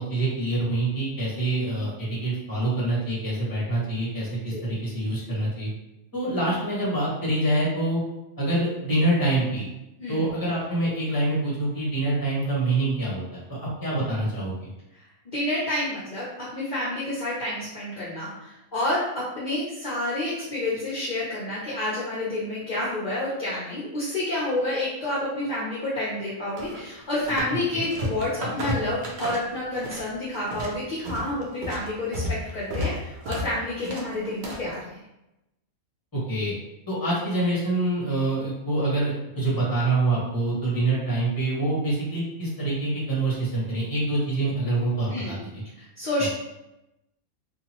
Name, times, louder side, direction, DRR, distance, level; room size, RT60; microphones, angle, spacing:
voice 1, 0.0-5.7 6.1-8.0 8.4-9.7 10.1-14.7 27.7-27.8 36.1-36.5 36.9-45.6 46.2-46.3, right 2 dB, 15° left, -6 dB, 0.9 m, -26 dB
voice 2, 15.3-16.3 16.5-34.9 45.1-45.4 45.8-46.3, left 1 dB, 50° left, -7 dB, 0.5 m, -29 dB
sound 1, 26.6-27.6 27.8-30.1 30.3-34.7, equal, 75° right, 0.4 m, -32 dB
2.7 x 2.5 x 2.9 m, 0.91 s
omnidirectional pair, 1.5 m